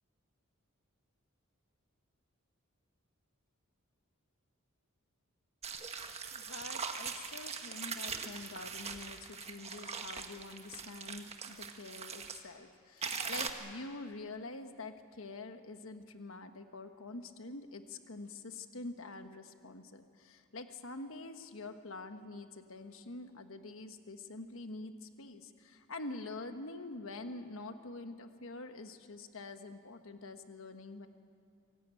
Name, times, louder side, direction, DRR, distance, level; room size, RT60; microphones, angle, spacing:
sound 1, 5.6-12.4 13.0-13.5, right 5 dB, 30° right, 1.4 m, -41 dB
voice 1, 6.3-31.1, left 2 dB, 65° left, 8 dB, 1.3 m, -46 dB
25.5 x 17.0 x 9.0 m, 2.3 s
head